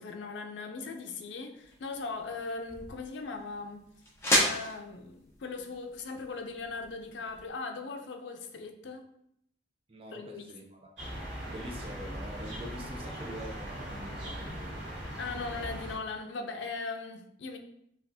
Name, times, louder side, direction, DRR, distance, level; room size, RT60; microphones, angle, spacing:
voice 1, 0.0-3.8 4.4-9.1 10.1-10.5 15.2-17.6, left 4 dB, 80° left, 6 dB, 0.5 m, -39 dB
sound 1, 1.5-7.5, equal, 15° left, 0.7 m, -34 dB
voice 2, 9.9-11.1 11.4-14.8 15.6-15.7, equal, 30° right, 2 dB, 0.5 m, -45 dB
sound 2, 11.0-15.9, equal, 85° right, 1.5 m, -39 dB
5.6 x 2.4 x 2.6 m, 0.74 s
head